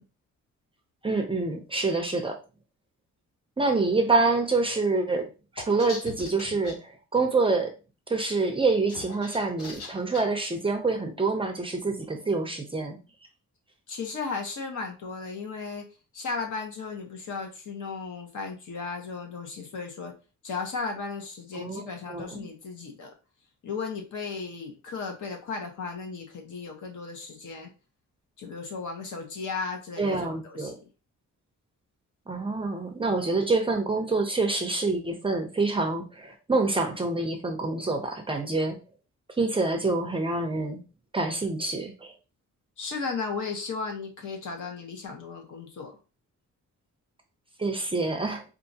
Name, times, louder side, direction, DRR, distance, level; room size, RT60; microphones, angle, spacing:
voice 1, 1.0-2.4 3.6-5.3 5.6-7.7 8.1-13.0 21.5-22.5 30.0-30.7 32.3-38.8 39.4-40.8 41.1-42.1 47.6-48.4, right 3 dB, 20° right, 4 dB, 0.4 m, -26 dB
sound 1, 5.6-6.7 8.7-10.2, left 3 dB, 90° left, 1.2 m, -41 dB
voice 2, 13.9-15.8 16.1-20.1 20.4-23.1 23.6-27.7 28.4-30.7 42.8-46.0, left 4 dB, 75° left, 3 dB, 1.1 m, -35 dB
4.6 x 2.4 x 2.7 m, 0.32 s
wide cardioid pair, 175°, 31 cm